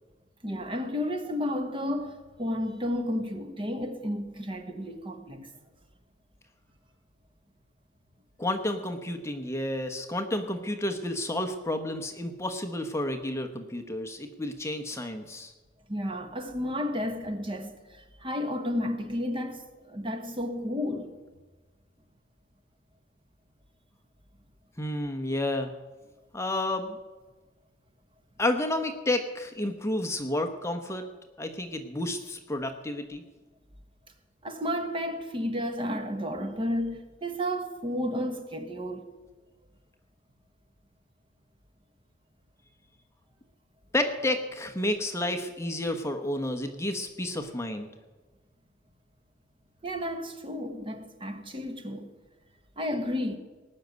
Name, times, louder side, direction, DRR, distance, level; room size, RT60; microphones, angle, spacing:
voice 1, 0.4-5.5 15.9-21.2 34.4-39.1 49.8-52.1 52.8-53.4, left 1 dB, 25° right, 1.3 m, -32 dB
voice 2, 8.4-15.5 24.8-25.7 26.3-27.0 28.4-31.0 31.4-33.2 43.9-47.9, left 1 dB, 15° left, 1.1 m, -31 dB
18.5 x 6.6 x 9.4 m
head